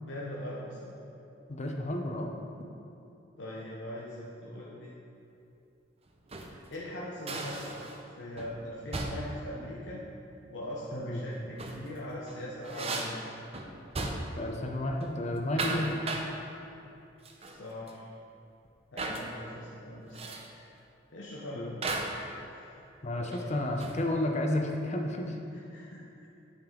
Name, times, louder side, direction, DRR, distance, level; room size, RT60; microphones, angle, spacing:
voice 1, 0.0-0.9 3.4-5.0 6.5-7.7 8.2-10.0 10.5-13.2 17.4-18.1 18.9-20.3 21.1-21.7 22.5-22.8 23.2-23.5 25.5-26.3, left 1 dB, 75° left, -6 dB, 0.9 m, -41 dB
voice 2, 1.5-2.3 10.9-11.2 14.4-16.0 21.6-21.8 23.0-25.4, left 1 dB, 40° left, 2 dB, 0.7 m, -31 dB
sound 1, 6.1-6.6 7.3-8.1 8.4-8.6 8.9-9.4 11.4-11.9 12.3-14.5 14.8-15.0 15.4-16.4 17.3-17.6 17.9-18.0 19.0-19.3 20.1-20.5 21.8-22.3 23.3-24.1, right 2 dB, 35° right, 0.6 m, -36 dB
8.7 x 5.4 x 3.8 m, 2.7 s
head